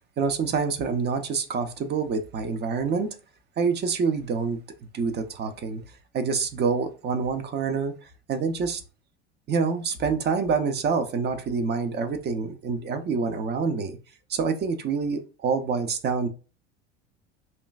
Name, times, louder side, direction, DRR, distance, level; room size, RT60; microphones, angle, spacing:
voice 1, 0.2-3.1 3.6-4.6 4.9-5.8 6.1-7.9 8.3-8.8 9.5-13.9 14.3-16.3, right 5 dB, 30° right, 8 dB, 0.7 m, -26 dB
4.4 x 2.9 x 2.4 m, 0.34 s
figure-of-eight pair, 75°, 35 cm